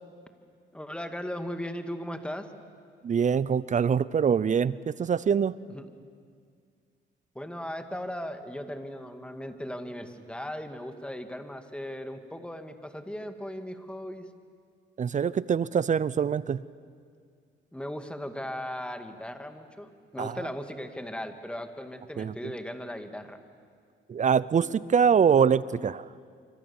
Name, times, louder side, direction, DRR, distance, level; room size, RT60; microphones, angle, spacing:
voice 1, 0.7-2.5 5.7-5.9 7.3-14.3 17.7-23.4, equal, 5° left, 7 dB, 2.1 m, -37 dB
voice 2, 3.0-5.6 15.0-16.6 20.2-20.4 22.2-22.5 24.1-26.1, right 7 dB, 40° right, 19 dB, 0.6 m, -24 dB
26.0 x 25.0 x 7.2 m, 2.1 s
cardioid pair, 90°, 20 cm